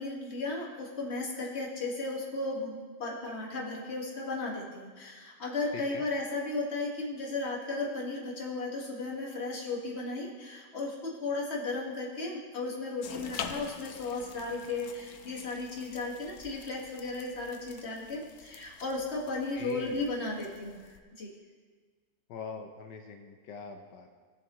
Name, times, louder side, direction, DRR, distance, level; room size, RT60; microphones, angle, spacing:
voice 1, 0.0-20.8 21.2-21.3, left 3 dB, 40° left, -3 dB, 2.0 m, -35 dB
voice 2, 5.7-6.0 19.5-20.0 22.3-24.1, left 5 dB, 85° left, 4 dB, 1.4 m, -43 dB
sound 1, 13.0-21.0, left 7 dB, 70° left, 1.1 m, -46 dB
17.5 x 7.3 x 3.1 m, 1.5 s
omnidirectional pair, 1.8 m